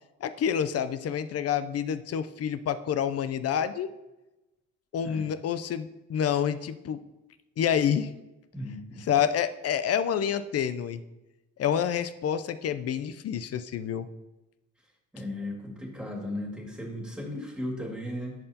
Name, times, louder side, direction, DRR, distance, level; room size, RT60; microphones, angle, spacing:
voice 1, 0.2-3.9 4.9-7.0 7.6-8.1 9.0-11.0 11.6-14.1, left 8 dB, 55° left, 12 dB, 0.5 m, -28 dB
voice 2, 8.5-9.0 15.1-18.3, left 1 dB, 5° right, 0 dB, 2.1 m, -36 dB
10.5 x 5.6 x 2.8 m, 1.0 s
cardioid pair, 90°, 30 cm